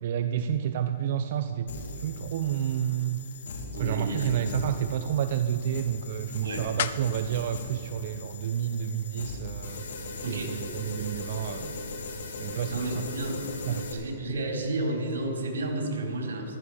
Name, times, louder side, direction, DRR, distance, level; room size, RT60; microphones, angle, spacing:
voice 1, 0.0-1.7 2.0-3.2 3.8-9.8 10.2-11.7 12.4-13.0 13.7-13.9, right 9 dB, 50° right, 9 dB, 0.6 m, -30 dB
sound 1, 1.7-13.9, left 3 dB, 70° left, 2.5 m, -39 dB
voice 2, 3.7-4.3 6.4-6.7 10.2-10.6 12.4-13.4 13.7-16.6, right 2 dB, 85° right, 1 dB, 4.0 m, -32 dB
sound 2, 3.8-9.0, left 10 dB, 55° left, 0.6 m, -41 dB
15.5 x 13.5 x 5.0 m, 2.4 s
hypercardioid pair, 155°, 0 cm